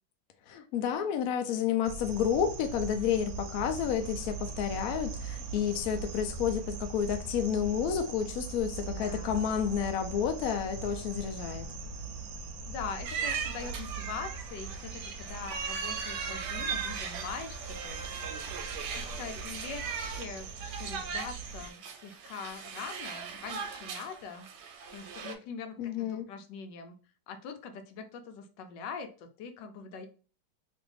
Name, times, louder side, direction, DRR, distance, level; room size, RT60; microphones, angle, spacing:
voice 1, 0.5-11.6 25.8-26.3, left 8 dB, 70° left, 0.9 m, -30 dB
sound 1, 1.8-21.7, right 4 dB, 65° right, 0.9 m, -41 dB
voice 2, 8.9-9.5 12.7-18.1 18.3-18.5 18.9-24.5 24.9-26.9 27.3-30.1, left 6 dB, 90° left, 1.3 m, -43 dB
sound 2, 13.0-25.3, right 6 dB, 85° right, 1.2 m, -38 dB
3.1 x 2.5 x 3.2 m
omnidirectional pair, 1.9 m